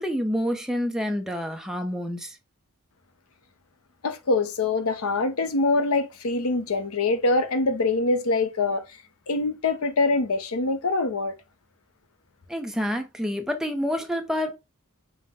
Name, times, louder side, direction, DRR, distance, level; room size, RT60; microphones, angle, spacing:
voice 1, 0.0-2.4 12.5-14.6, equal, ahead, 0.6 m, -28 dB
voice 2, 4.0-8.8 9.3-11.3, left 3 dB, 80° left, 0.7 m, -24 dB
5.5 x 2.2 x 3.4 m
head